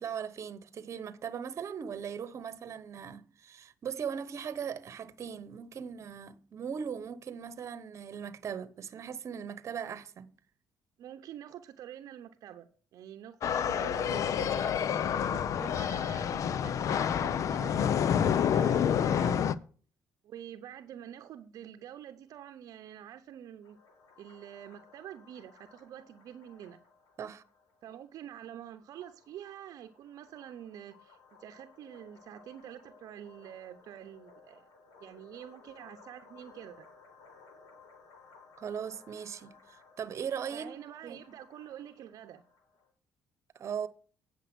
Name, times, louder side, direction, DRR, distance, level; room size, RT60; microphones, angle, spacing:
voice 1, 0.0-10.3 14.4-14.6 18.5-18.9 27.2-27.4 38.6-40.7 41.0-41.4 43.5-43.9, right 7 dB, 50° right, 1.0 m, -39 dB
voice 2, 11.0-17.8 19.0-19.4 20.2-23.8 24.2-26.8 27.8-34.7 35.0-36.9 40.5-42.4, right 10 dB, 70° right, 0.8 m, -47 dB
sound 1, 13.4-19.6, left 8 dB, 60° left, 0.6 m, -28 dB
sound 2, 23.6-42.9, left 4 dB, 80° left, 3.3 m, -59 dB
9.1 x 6.7 x 6.1 m
cardioid pair, 95°, 6 cm